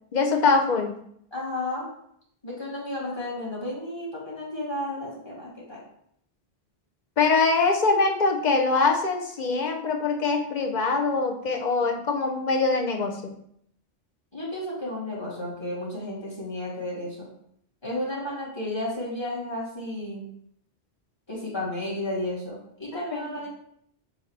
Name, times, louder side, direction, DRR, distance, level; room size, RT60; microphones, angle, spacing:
voice 1, 0.1-0.9 7.2-13.3 22.9-23.3, left 4 dB, 45° left, 2 dB, 0.9 m, -23 dB
voice 2, 1.3-1.9 2.4-5.8 14.3-17.3 17.8-20.3 21.3-23.5, left 1 dB, 25° left, -6 dB, 2.2 m, -32 dB
7.4 x 2.9 x 4.6 m, 0.69 s
omnidirectional pair, 1.1 m